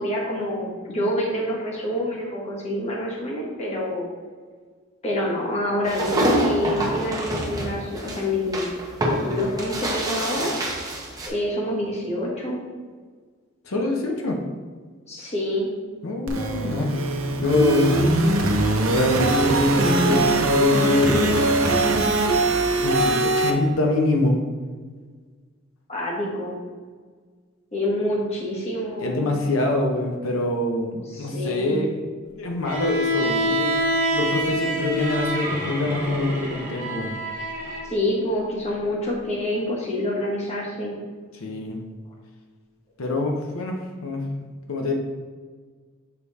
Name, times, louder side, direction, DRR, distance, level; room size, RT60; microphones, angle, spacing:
voice 1, 0.0-4.1 5.0-8.7 9.2-10.7 11.3-12.6 15.1-15.7 25.9-26.6 27.7-29.2 31.1-31.9 37.8-41.0, left 1 dB, 35° left, -4 dB, 1.5 m, -27 dB
sound 1, 5.8-11.3, equal, 20° right, 0.9 m, -26 dB
voice 2, 13.6-14.4 16.0-17.0 17.3-18.0 18.9-21.5 22.8-24.4 29.0-32.0 32.4-33.7 34.1-37.1 41.3-41.8 43.0-43.8 44.0-44.9, left 2 dB, 90° left, 2 dB, 0.8 m, -24 dB
sound 2, 16.3-23.5, right 2 dB, 85° right, 0.8 m, -21 dB
Bowed string instrument, 32.6-37.9, equal, 45° right, 1.3 m, -26 dB
6.7 x 3.5 x 4.1 m, 1.5 s
head